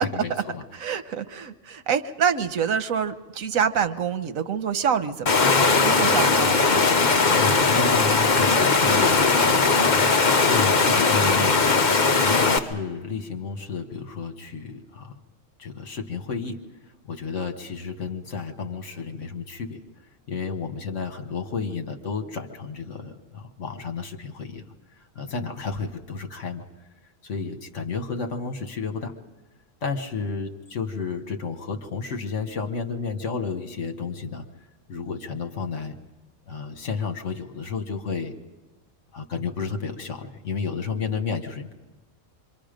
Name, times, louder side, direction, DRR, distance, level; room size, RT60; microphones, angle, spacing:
voice 1, 0.0-0.6 7.3-9.9 10.3-11.8 12.2-15.1 15.6-16.6 17.1-19.8 20.3-24.6 25.2-26.6 27.2-29.1 29.8-34.5 34.9-35.9 36.5-38.3 39.1-41.7, left 5 dB, 65° left, 6 dB, 1.7 m, -31 dB
voice 2, 0.7-6.8, right 7 dB, 90° right, 11 dB, 1.3 m, -26 dB
Water, 5.3-12.6, left 4 dB, 40° left, 1.0 m, -19 dB
26.0 x 24.0 x 5.2 m, 1.2 s
omnidirectional pair, 1.4 m